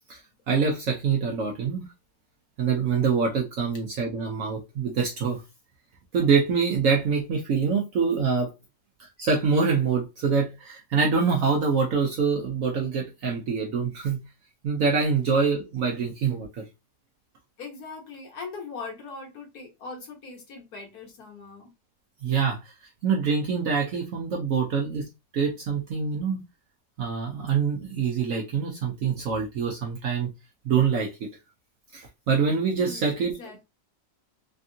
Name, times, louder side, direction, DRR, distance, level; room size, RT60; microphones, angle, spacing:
voice 1, 0.5-1.9 2.6-5.4 6.1-8.5 9.0-14.2 14.6-16.6 22.2-22.7 23.0-25.1 25.3-26.4 27.0-30.3 30.6-31.3 31.9-33.3, right 5 dB, 65° right, 0.8 m, -25 dB
voice 2, 17.6-21.7 32.8-33.6, left 4 dB, 65° left, 1.4 m, -40 dB
3.4 x 2.3 x 2.6 m
omnidirectional pair, 1.9 m